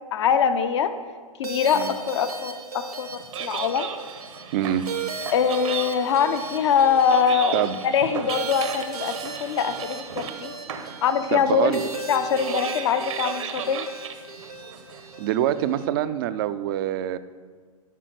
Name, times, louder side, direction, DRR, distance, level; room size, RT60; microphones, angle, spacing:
voice 1, 0.1-0.9 1.4-3.9 5.3-7.6 7.8-10.5 11.0-11.8 12.1-13.9, left 7 dB, 50° left, 9 dB, 0.8 m, -23 dB
sound 1, 1.4-15.9, right 4 dB, 85° right, 1.4 m, -36 dB
sound 2, 3.0-15.3, right 8 dB, 60° right, 1.0 m, -36 dB
voice 2, 4.5-4.9 7.5-7.8 11.3-11.9 15.2-17.2, right 11 dB, 35° right, 12 dB, 0.5 m, -25 dB
12.0 x 5.8 x 6.5 m, 1.5 s
figure-of-eight pair, 110°, 19 cm